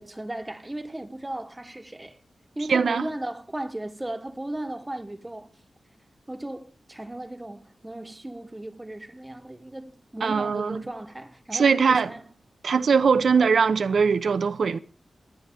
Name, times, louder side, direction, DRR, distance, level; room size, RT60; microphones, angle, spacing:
voice 1, 0.0-2.2 2.6-5.5 6.3-12.2, right 1 dB, 20° right, 1.0 m, -36 dB
voice 2, 2.7-3.1 10.2-10.8 11.5-12.1 12.6-14.8, right 5 dB, 80° right, 0.7 m, -21 dB
26.0 x 9.6 x 3.5 m
cardioid pair, 70°, 0 cm